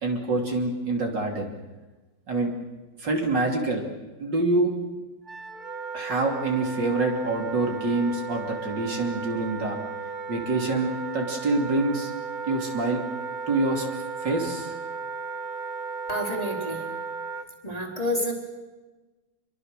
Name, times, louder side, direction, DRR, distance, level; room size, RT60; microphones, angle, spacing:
voice 1, 0.0-1.5 2.3-2.5 3.0-3.8 4.2-4.7 5.9-9.8 10.3-12.1 12.5-13.0 13.5-13.9 14.2-14.7, right 2 dB, 55° right, 1 dB, 3.6 m, -26 dB
Wind instrument woodwind instrument, 5.2-17.5, right 5 dB, 25° right, 1.2 m, -35 dB
voice 2, 16.1-16.8 17.6-18.3, left 1 dB, 15° left, 0 dB, 4.0 m, -28 dB
27.0 x 23.0 x 6.7 m, 1.2 s
omnidirectional pair, 2.4 m